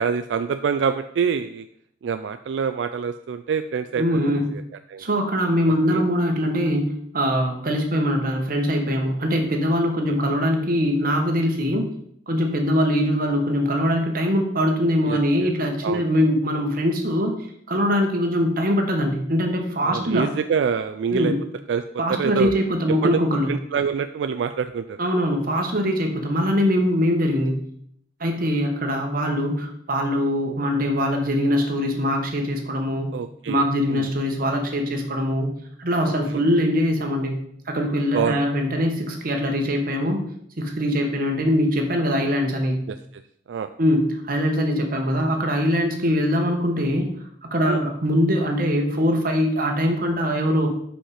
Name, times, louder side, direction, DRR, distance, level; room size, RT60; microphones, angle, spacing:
voice 1, 0.0-1.7 2.0-4.6 4.9-5.0 5.9-6.0 10.1-10.2 15.1-15.5 15.8-16.1 19.8-21.3 21.7-22.5 23.0-23.2 23.5-25.0 33.1-34.1 36.3-36.4 38.1-38.4 42.9-43.0 43.5-43.7 47.6-47.9, right 6 dB, 85° right, 9 dB, 0.3 m, -26 dB
voice 2, 4.0-4.5 5.0-11.9 12.3-17.3 17.7-20.3 21.1-21.4 22.0-23.5 25.0-27.6 28.2-33.1 33.5-35.5 35.8-37.3 37.7-40.2 40.6-42.8 43.8-47.1 47.5-50.7, equal, 55° right, 3 dB, 1.3 m, -22 dB
5.7 x 5.2 x 4.9 m, 0.68 s
head